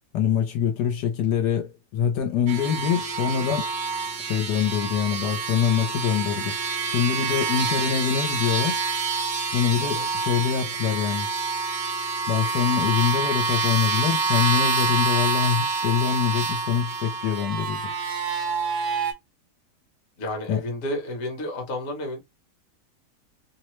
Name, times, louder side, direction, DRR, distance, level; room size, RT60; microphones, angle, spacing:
voice 1, 0.1-3.7 4.2-8.8 9.5-11.3 12.3-17.9 20.5-20.6, left 8 dB, 75° left, 1.2 m, -24 dB
sound 1, 2.5-19.1, right 4 dB, 70° right, 1.1 m, -27 dB
voice 2, 20.2-22.2, left 1 dB, 50° left, 1.0 m, -31 dB
3.0 x 2.0 x 3.0 m
omnidirectional pair, 1.9 m